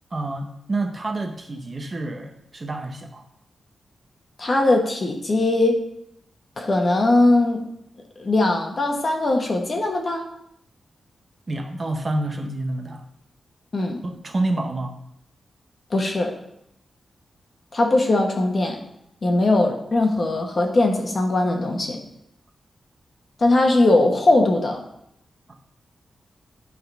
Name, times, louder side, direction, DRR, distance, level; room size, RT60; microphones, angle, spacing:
voice 1, 0.1-3.3 11.5-13.0 14.0-14.9, right 2 dB, 30° right, 4 dB, 0.8 m, -28 dB
voice 2, 4.4-5.8 6.6-7.6 8.2-10.2 13.7-14.0 15.9-16.3 17.7-18.8 19.2-22.0 23.4-24.8, left 2 dB, 35° left, 2 dB, 1.3 m, -20 dB
11.5 x 3.9 x 5.4 m, 0.77 s
wide cardioid pair, 165°, 0 cm